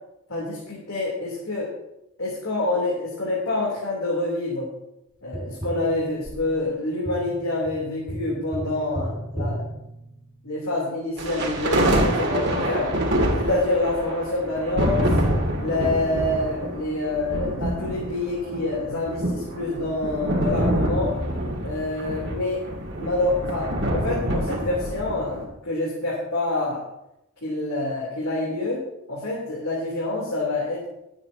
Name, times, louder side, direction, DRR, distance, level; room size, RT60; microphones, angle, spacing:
voice 1, 0.3-1.7 2.2-4.7 5.2-9.7 10.4-12.9 13.3-15.2 15.6-21.1 21.6-22.6 23.0-26.9 27.4-30.9, left 2 dB, 75° left, -5 dB, 3.4 m, -27 dB
Tap, 5.3-10.6 13.2-13.3, equal, 5° right, 2.2 m, -35 dB
sound 1, 11.2-25.5, right 1 dB, 55° right, 2.5 m, -26 dB
21.5 x 8.8 x 2.9 m, 0.86 s
head